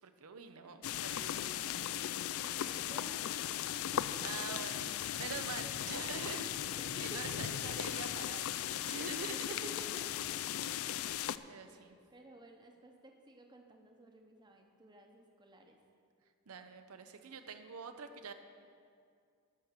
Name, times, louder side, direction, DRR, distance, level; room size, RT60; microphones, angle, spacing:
voice 1, 0.0-2.1 2.4-2.7 4.2-6.5 7.0-8.6 8.9-9.4 11.5-12.0 16.5-18.3, right 5 dB, 75° right, 7 dB, 0.7 m, -46 dB
sound 1, 0.8-11.4, left 11 dB, 70° left, 0.3 m, -37 dB
voice 2, 2.5-4.6 6.3-7.4 9.3-10.2 10.8-11.1 11.7-15.8, right 1 dB, 20° right, 3 dB, 0.9 m, -53 dB
13.5 x 5.9 x 6.6 m, 2.3 s
head